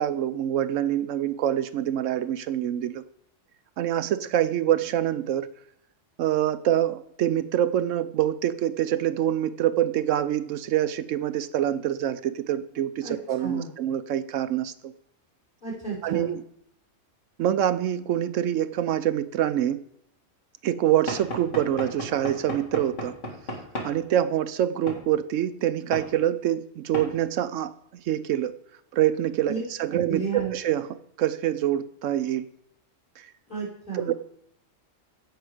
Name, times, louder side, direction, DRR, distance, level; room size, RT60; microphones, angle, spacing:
voice 1, 0.0-3.0 3.8-5.5 6.2-14.9 16.0-16.4 17.4-19.8 20.6-23.2 23.8-27.7 28.0-28.5 28.9-32.5 33.2-33.3 33.9-34.1, right 11 dB, 75° right, 13 dB, 0.9 m, -25 dB
voice 2, 13.4-13.7 15.6-16.4 29.5-29.6 29.9-30.5 33.5-34.1, right 5 dB, 40° left, -5 dB, 4.7 m, -32 dB
Knock / Wood, 21.1-24.0 24.9-25.0 25.9-26.1 26.9-27.1, equal, 70° left, 2.4 m, -34 dB
16.0 x 5.8 x 5.0 m, 0.72 s
omnidirectional pair, 1.3 m